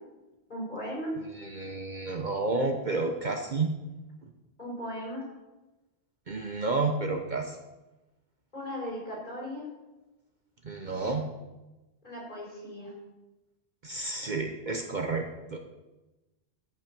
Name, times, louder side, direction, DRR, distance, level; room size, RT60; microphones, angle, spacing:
voice 1, 0.5-1.1 4.6-5.2 8.5-9.7 12.0-12.9, equal, 45° left, -4 dB, 5.0 m, -37 dB
voice 2, 1.2-3.8 6.3-7.6 10.6-11.3 13.8-15.6, right 3 dB, 45° right, 4 dB, 0.9 m, -31 dB
13.0 x 6.1 x 6.1 m, 1.1 s
omnidirectional pair, 1.1 m